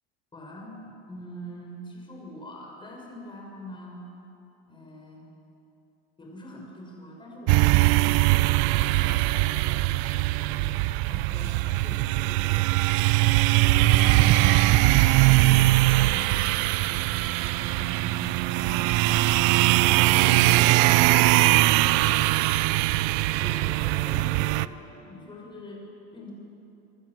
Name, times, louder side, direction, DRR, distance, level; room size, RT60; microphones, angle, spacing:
voice 1, 0.3-4.1 4.7-5.3 6.2-10.1 10.4-13.5 13.8-19.3 19.9-20.5 20.8-22.7 23.4-25.8 26.1-26.3, equal, 15° left, 0 dB, 6.0 m, -44 dB
sound 1, 7.5-24.7, right 18 dB, 60° right, 0.6 m, -21 dB
27.0 x 22.0 x 7.7 m, 2.8 s
cardioid pair, 155°, 33 cm